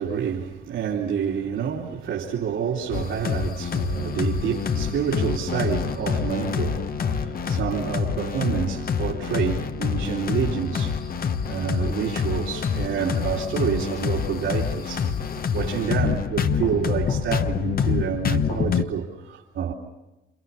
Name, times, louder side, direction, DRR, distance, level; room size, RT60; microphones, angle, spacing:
voice 1, 0.0-15.1 15.5-19.7, right 7 dB, 80° right, 3.5 m, -28 dB
sound 1, 2.9-18.8, left 6 dB, 50° left, 1.2 m, -26 dB
29.5 x 28.0 x 5.7 m
cardioid pair, 90°, 20 cm